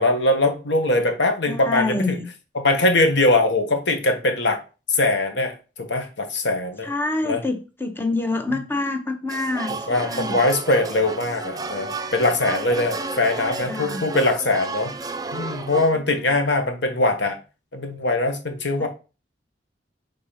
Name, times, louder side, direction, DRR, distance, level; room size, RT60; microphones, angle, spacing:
voice 1, 0.0-2.2 2.6-4.6 4.9-6.9 7.2-7.4 9.9-14.9 15.3-17.4 17.7-18.9, left 2 dB, 75° left, 1.3 m, -21 dB
voice 2, 1.5-2.3 6.8-10.4 13.4-14.1 15.9-16.3 18.8-18.9, left 2 dB, 10° left, 0.8 m, -27 dB
sound 1, 9.3-15.9, right 3 dB, 20° right, 0.5 m, -32 dB
5.2 x 3.9 x 5.7 m
head